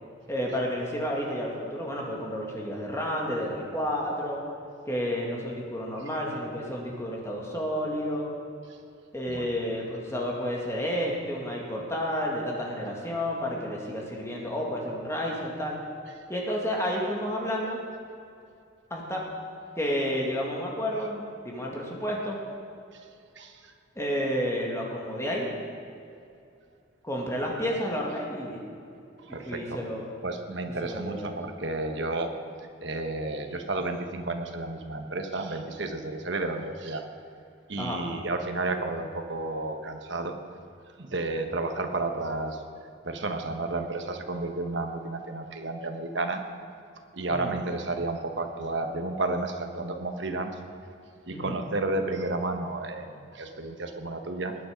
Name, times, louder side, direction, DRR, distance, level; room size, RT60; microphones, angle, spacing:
voice 1, 0.3-4.4 4.9-8.3 9.1-15.8 16.3-17.8 18.9-19.2 19.8-22.4 24.0-25.5 27.0-28.6 29.3-30.1 30.8-31.3 37.8-38.0 47.3-47.6 51.3-51.6, equal, 15° left, -2 dB, 2.0 m, -31 dB
voice 2, 23.4-23.7 29.2-29.8 30.2-32.3 32.8-37.0 37.7-40.4 41.0-42.6 43.0-46.4 47.1-50.5 51.3-54.6, right 2 dB, 60° right, 5 dB, 1.2 m, -32 dB
20.0 x 9.2 x 5.2 m, 2.5 s
head